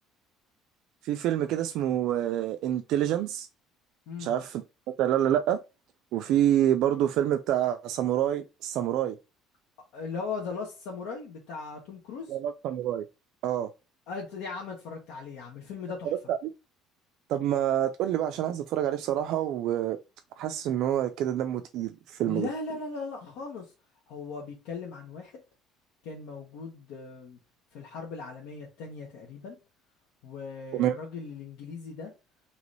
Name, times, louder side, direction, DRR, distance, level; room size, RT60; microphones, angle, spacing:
voice 1, 1.0-3.5 4.2-4.6 5.0-5.6 6.1-9.2 12.3-13.0 13.4-13.7 16.3-16.4 17.3-20.0 20.4-22.5 30.7-30.9, right 11 dB, 60° right, 0.4 m, -27 dB
voice 2, 9.9-12.3 14.1-16.1 22.2-23.7 24.1-25.4 26.0-27.4 27.7-29.6 30.2-32.1, left 4 dB, 75° left, 1.1 m, -38 dB
3.2 x 2.9 x 4.0 m
cardioid pair, 165°, 0 cm